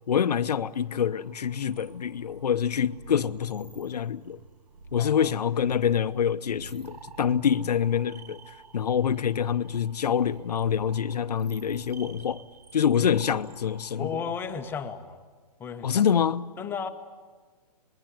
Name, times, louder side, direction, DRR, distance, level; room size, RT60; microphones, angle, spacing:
voice 1, 0.1-4.4 4.9-8.4 8.7-12.4 12.7-14.1 15.8-16.5, left 8 dB, 80° left, 0.9 m, -26 dB
sound 1, 1.1-15.0, right 3 dB, 90° right, 1.4 m, -49 dB
voice 2, 5.0-5.4 14.0-15.2 15.6-16.0 16.6-16.9, left 6 dB, 10° left, 0.9 m, -34 dB
26.0 x 21.0 x 7.9 m
hypercardioid pair, 150°, 20 cm